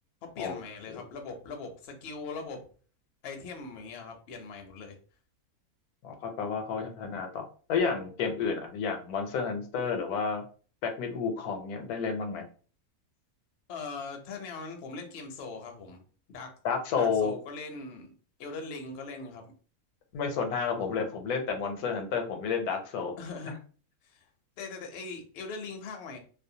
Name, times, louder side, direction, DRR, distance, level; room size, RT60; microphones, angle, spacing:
voice 1, 0.4-2.6 3.2-5.0 13.7-16.0 16.3-16.5 17.0-18.1 18.4-19.4 23.2-23.6 24.0-24.3 24.6-26.2, left 4 dB, 60° left, 3 dB, 0.7 m, -40 dB
voice 2, 6.0-10.4 10.8-12.4 16.6-17.3 20.1-23.1, left 5 dB, 85° left, 5 dB, 1.1 m, -31 dB
2.6 x 2.0 x 2.7 m, 0.40 s
omnidirectional pair, 1.6 m